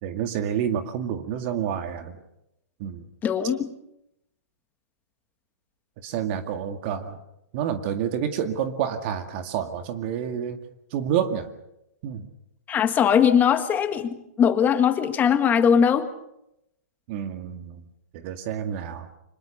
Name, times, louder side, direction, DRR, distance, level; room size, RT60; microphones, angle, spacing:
voice 1, 0.0-2.2 2.8-3.0 6.0-7.2 7.5-10.6 10.9-11.5 12.0-12.3 17.1-17.8 18.1-19.1, right 9 dB, 45° right, 7 dB, 2.1 m, -28 dB
voice 2, 3.2-3.6 12.7-16.1, left 8 dB, 20° left, 9 dB, 1.8 m, -20 dB
25.5 x 21.0 x 6.7 m, 0.83 s
hypercardioid pair, 135°, 9 cm